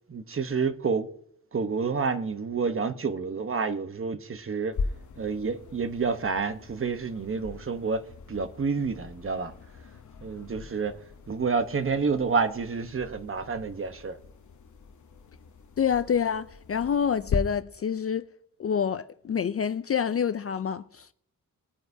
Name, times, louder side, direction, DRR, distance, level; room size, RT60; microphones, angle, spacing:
voice 1, 0.1-1.1 1.5-4.8 5.2-9.5 10.2-11.0 11.3-14.2, right 5 dB, 40° right, 1.0 m, -29 dB
sound 1, 4.7-17.4, left 5 dB, 60° left, 0.9 m, -40 dB
voice 2, 15.8-18.3 18.6-21.1, left 7 dB, 45° left, 0.5 m, -27 dB
21.5 x 9.2 x 2.7 m
wide cardioid pair, 110°, 34 cm